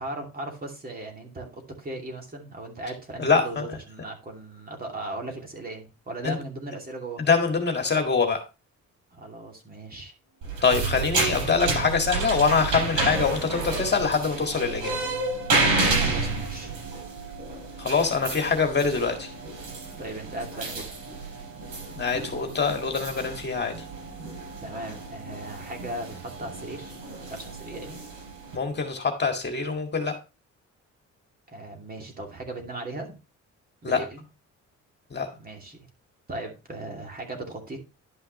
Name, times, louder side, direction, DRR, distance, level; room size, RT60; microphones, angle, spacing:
voice 1, 0.0-7.3 9.1-10.1 16.0-16.7 20.0-21.0 24.6-27.0 27.3-28.0 31.5-33.1 33.8-34.2 35.3-35.9 36.3-37.9, right 2 dB, 30° right, 2 dB, 2.7 m, -37 dB
voice 2, 3.2-3.6 6.2-6.4 7.2-8.4 10.6-15.0 17.8-19.3 21.9-23.7 28.5-30.2 33.8-34.0 35.1-35.3, left 5 dB, 35° left, 4 dB, 1.9 m, -24 dB
sound 1, 10.3-29.3, right 4 dB, 70° right, 2.3 m, -46 dB
sound 2, 10.4-28.5, right 3 dB, 90° right, 5.7 m, -31 dB
11.0 x 5.7 x 3.1 m, 0.29 s
cardioid pair, 90°, 30 cm